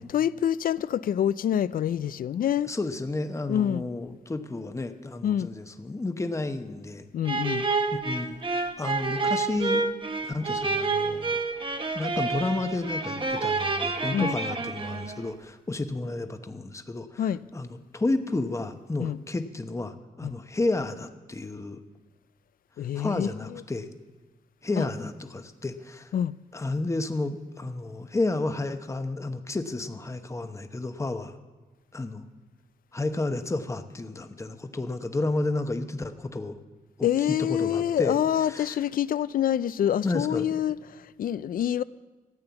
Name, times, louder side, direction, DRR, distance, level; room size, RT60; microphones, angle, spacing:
voice 1, 0.1-2.7 3.5-3.8 5.2-5.5 7.1-7.7 14.1-14.4 17.2-17.4 19.0-19.2 20.2-20.3 22.8-23.6 24.7-24.9 26.1-26.3 37.0-41.8, left 10 dB, 70° left, 18 dB, 0.4 m, -26 dB
voice 2, 2.7-7.1 7.9-9.8 10.2-11.4 11.9-21.8 22.9-23.9 24.6-26.1 26.5-31.3 31.9-32.2 32.9-36.6 37.0-38.2 38.5-38.8 40.0-40.6, left 2 dB, 20° left, 8 dB, 0.9 m, -31 dB
sound 1, 7.2-15.3, right 3 dB, 35° right, 1.0 m, -29 dB
14.5 x 8.9 x 6.9 m, 1.2 s
cardioid pair, 85°, 15 cm